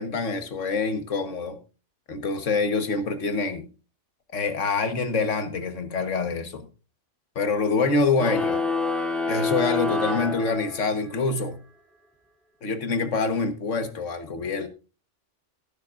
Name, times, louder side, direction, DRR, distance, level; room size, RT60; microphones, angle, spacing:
voice 1, 0.0-1.6 2.1-3.7 4.3-6.6 7.3-8.6 9.3-11.6 12.6-14.7, left 4 dB, 85° left, 1.7 m, -26 dB
sound 1, 8.2-11.1, left 3 dB, ahead, 2.2 m, -27 dB
15.0 x 12.0 x 2.5 m
omnidirectional pair, 1.2 m